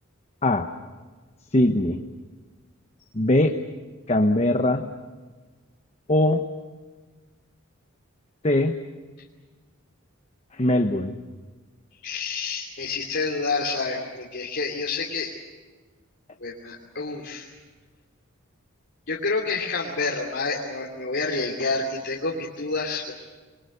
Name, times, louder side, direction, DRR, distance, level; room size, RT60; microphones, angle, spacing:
voice 1, 1.5-2.0 3.1-3.6 4.1-4.8 6.1-6.5 8.4-8.7 10.6-11.1, left 1 dB, 30° left, 5 dB, 1.1 m, -21 dB
voice 2, 12.0-15.3 16.4-17.5 19.1-23.1, left 3 dB, 60° left, -3 dB, 3.0 m, -28 dB
27.5 x 23.0 x 6.7 m, 1.4 s
head